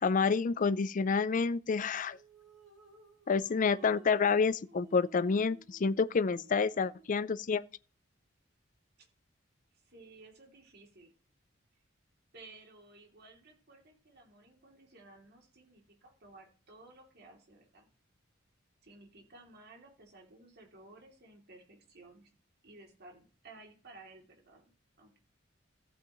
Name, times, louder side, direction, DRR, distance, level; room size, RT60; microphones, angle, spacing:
voice 1, 0.0-2.2 3.3-7.6, left 5 dB, 40° left, 0.4 m, -28 dB
sound 1, 1.9-7.2, right 4 dB, 75° right, 2.8 m, -57 dB
voice 2, 9.8-11.1 12.3-17.9 18.8-22.3 22.6-24.7 25.0-25.2, right 2 dB, 55° right, 2.8 m, -56 dB
14.5 x 8.0 x 3.0 m
head